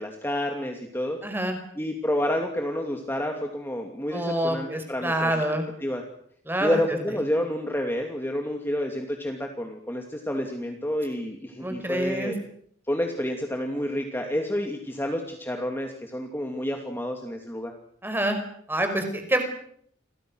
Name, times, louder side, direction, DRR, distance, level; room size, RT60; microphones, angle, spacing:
voice 1, 0.0-1.2 1.8-5.4 5.8-6.0 6.6-12.3 12.9-17.7, left 1 dB, 10° left, 3 dB, 2.7 m, -29 dB
voice 2, 1.2-1.6 4.1-5.7 6.5-6.8 11.6-12.3 18.0-18.4 18.7-19.4, right 1 dB, 10° right, 6 dB, 5.2 m, -26 dB
30.0 x 24.5 x 6.4 m, 0.66 s
head